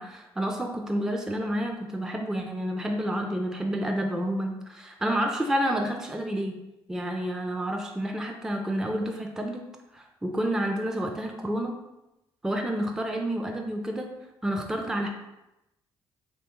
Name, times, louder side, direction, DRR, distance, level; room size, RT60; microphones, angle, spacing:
voice 1, 0.0-6.6 6.9-9.6 9.9-11.7 12.4-14.1 14.4-15.1, right 1 dB, 5° right, 2 dB, 0.4 m, -29 dB
3.2 x 2.2 x 2.9 m, 0.93 s
supercardioid pair, 75°, 10 cm